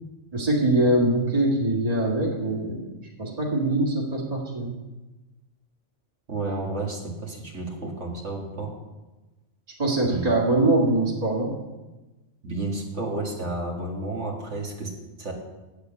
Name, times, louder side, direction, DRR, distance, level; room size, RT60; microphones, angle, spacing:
voice 1, 0.3-2.8 3.2-4.7 9.8-11.5, right 2 dB, 30° right, -2 dB, 1.9 m, -23 dB
voice 2, 6.3-8.7 10.1-10.3 12.4-14.9 15.2-15.3, right 2 dB, 70° right, -2 dB, 2.3 m, -31 dB
8.9 x 8.1 x 8.2 m, 1.1 s
omnidirectional pair, 1.3 m